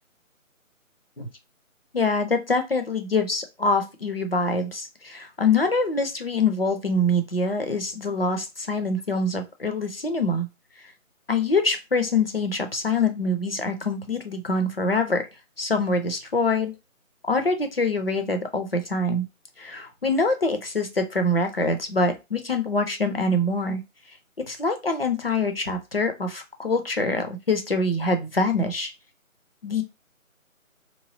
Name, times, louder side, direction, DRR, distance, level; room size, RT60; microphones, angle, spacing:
voice 1, 1.9-10.5 11.3-15.3 15.6-16.7 17.3-19.3 19.6-23.8 24.5-28.9 29.6-29.8, left 2 dB, 45° left, 6 dB, 0.5 m, -24 dB
3.5 x 3.0 x 2.7 m, 0.25 s
figure-of-eight pair, 175°, 41 cm